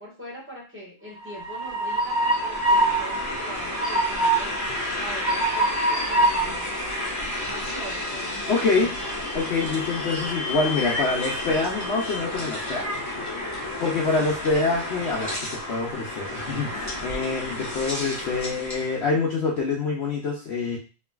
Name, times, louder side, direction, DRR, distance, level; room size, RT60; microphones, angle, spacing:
voice 1, 0.0-4.6 5.0-6.7 7.5-8.9, equal, 10° right, -6 dB, 1.3 m, -42 dB
Train, 1.1-18.9, right 1 dB, 15° left, 0.9 m, -27 dB
voice 2, 8.5-8.9 9.3-13.0 13.8-20.8, left 4 dB, 60° left, -3 dB, 0.8 m, -26 dB
3.1 x 2.8 x 2.3 m, 0.34 s
omnidirectional pair, 1.4 m